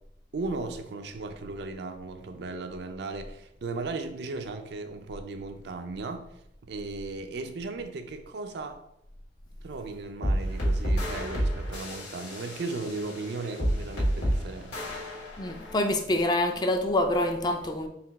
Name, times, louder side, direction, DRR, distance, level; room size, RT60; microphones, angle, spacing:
voice 1, 0.3-6.3 6.7-8.8 9.6-14.8, right 3 dB, 65° right, 0.4 m, -36 dB
sound 1, 10.2-15.9, equal, 75° left, 1.4 m, -30 dB
voice 2, 15.4-17.9, left 1 dB, 25° left, 0.4 m, -26 dB
4.1 x 2.3 x 4.0 m
head